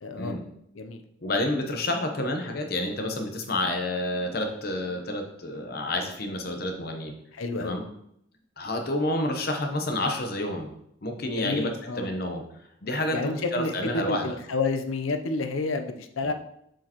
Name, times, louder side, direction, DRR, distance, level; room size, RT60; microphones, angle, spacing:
voice 1, 0.0-0.4 0.7-1.0 7.3-7.8 11.3-12.1 13.1-16.3, left 3 dB, 90° left, 7 dB, 0.7 m, -30 dB
voice 2, 1.2-7.1 7.6-7.8 8.6-10.7 11.0-11.7 12.0-12.4 12.8-14.3 16.2-16.3, left 1 dB, 50° left, 4 dB, 0.9 m, -29 dB
7.5 x 4.6 x 3.0 m, 0.74 s
head